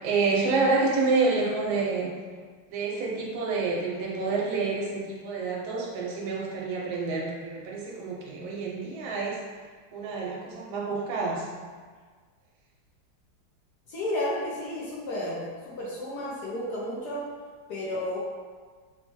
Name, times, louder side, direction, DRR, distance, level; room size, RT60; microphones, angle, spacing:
voice 1, 0.0-2.1 2.7-9.4 9.9-11.5, right 3 dB, 85° right, -3 dB, 1.5 m, -28 dB
voice 2, 13.9-17.2 17.7-18.2, left 1 dB, 65° left, -6 dB, 1.1 m, -32 dB
4.2 x 2.2 x 3.0 m, 1.5 s
omnidirectional pair, 2.2 m